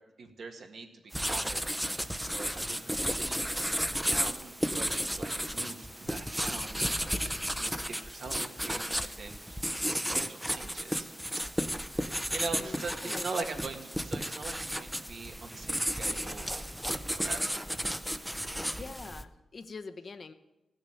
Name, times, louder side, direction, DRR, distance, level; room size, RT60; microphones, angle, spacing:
voice 1, 0.2-0.9 1.1-11.4 11.9-17.7, right 4 dB, 70° right, 3 dB, 1.8 m, -43 dB
sound 1, 1.1-19.2, equal, 5° right, 0.6 m, -33 dB
voice 2, 12.6-13.5 18.7-20.3, left 4 dB, 50° left, 9 dB, 0.8 m, -44 dB
15.5 x 6.6 x 9.0 m, 1.0 s
cardioid pair, 85°, 0 cm